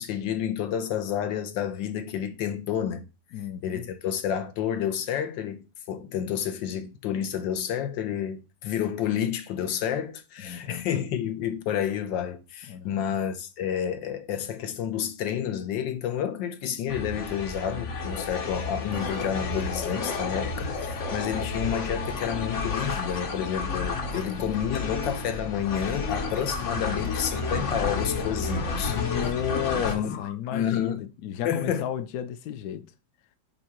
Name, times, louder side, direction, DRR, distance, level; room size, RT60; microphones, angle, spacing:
voice 1, 0.0-3.1 3.6-29.0 29.8-30.2 30.5-31.0 31.4-31.9, left 9 dB, 85° left, 1.5 m, -30 dB
voice 2, 3.3-3.9 10.4-10.9 12.7-13.2 24.2-24.6 28.8-32.9, left 10 dB, 70° left, 1.0 m, -33 dB
sound 1, 16.9-29.9, left 4 dB, 50° left, 1.1 m, -31 dB
8.3 x 2.8 x 4.4 m
omnidirectional pair, 2.0 m